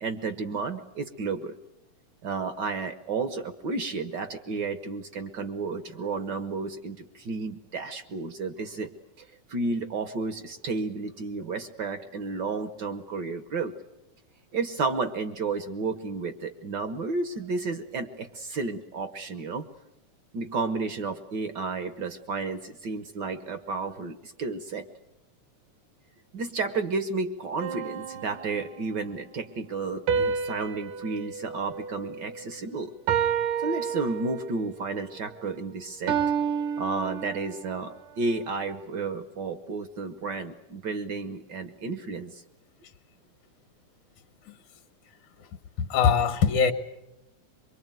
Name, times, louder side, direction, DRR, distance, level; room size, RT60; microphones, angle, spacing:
voice 1, 0.0-1.5 2.2-8.9 9.2-13.7 14.5-19.7 20.3-24.8 26.3-32.9 33.6-36.2 36.8-42.4, right 4 dB, 65° right, 10 dB, 1.0 m, -32 dB
sound 1, 27.6-29.0 30.1-32.6 33.1-34.7 36.1-37.8, right 7 dB, 85° right, 3.0 m, -30 dB
voice 2, 45.8-46.7, left 6 dB, 75° left, 6 dB, 2.5 m, -22 dB
24.0 x 23.5 x 9.1 m, 0.88 s
omnidirectional pair, 3.5 m